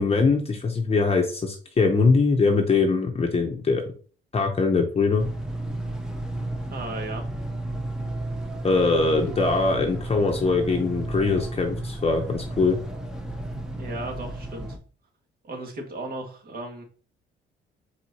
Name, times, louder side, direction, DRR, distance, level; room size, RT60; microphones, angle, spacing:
voice 1, 0.0-3.8 4.3-5.2 8.6-12.8, left 4 dB, 30° left, 3 dB, 0.8 m, -22 dB
sound 1, 5.2-14.8, right 1 dB, 5° right, 0.8 m, -33 dB
voice 2, 6.7-7.2 13.8-14.8 15.4-16.8, right 2 dB, 50° right, 2 dB, 1.7 m, -35 dB
4.5 x 4.0 x 2.8 m, 0.40 s
cardioid pair, 90°, 20 cm